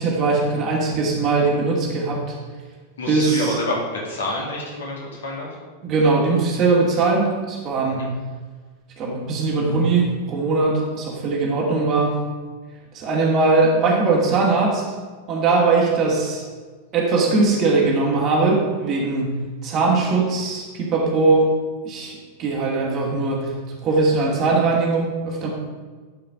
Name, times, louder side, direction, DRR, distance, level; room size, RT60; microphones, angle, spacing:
voice 1, 0.0-2.3 3.1-3.6 5.8-8.1 9.0-12.2 12.9-14.8 15.3-16.4 16.9-21.5 21.8-23.5 23.8-25.5, right 3 dB, 35° right, -2 dB, 2.6 m, -20 dB
voice 2, 3.0-5.5 8.0-8.1, left 2 dB, 65° left, -3 dB, 2.9 m, -28 dB
11.0 x 5.7 x 5.1 m, 1.4 s
figure-of-eight pair, 90°, 0 cm